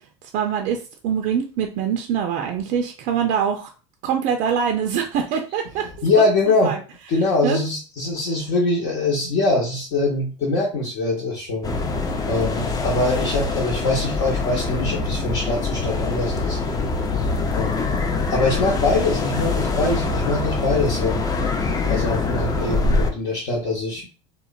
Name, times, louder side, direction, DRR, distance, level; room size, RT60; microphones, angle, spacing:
voice 1, 0.3-3.7 4.0-6.1 6.6-6.8 7.4-7.6, right 8 dB, 55° right, 4 dB, 0.4 m, -24 dB
voice 2, 6.0-6.7 7.1-11.7 12.3-16.6 17.5-17.8 18.3-21.2 21.9-24.1, left 2 dB, 60° left, -3 dB, 0.8 m, -23 dB
sound 1, 11.6-23.1, left 3 dB, 25° left, 0.5 m, -24 dB
3.0 x 2.1 x 2.4 m, 0.36 s
hypercardioid pair, 85°, 16 cm